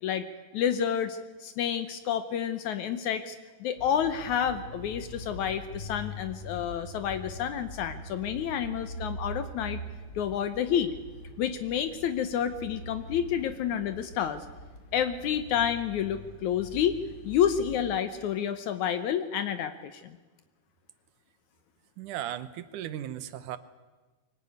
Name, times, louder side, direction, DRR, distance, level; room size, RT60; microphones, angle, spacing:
voice 1, 0.5-9.8 10.2-10.9 11.4-14.5 14.9-17.0 17.2-20.2, left 9 dB, 70° left, 10 dB, 2.2 m, -29 dB
sound 1, 3.8-18.0, equal, 35° left, 2.4 m, -43 dB
voice 2, 22.0-23.6, right 12 dB, 80° right, 13 dB, 2.4 m, -36 dB
23.5 x 19.0 x 9.5 m, 1.3 s
omnidirectional pair, 3.7 m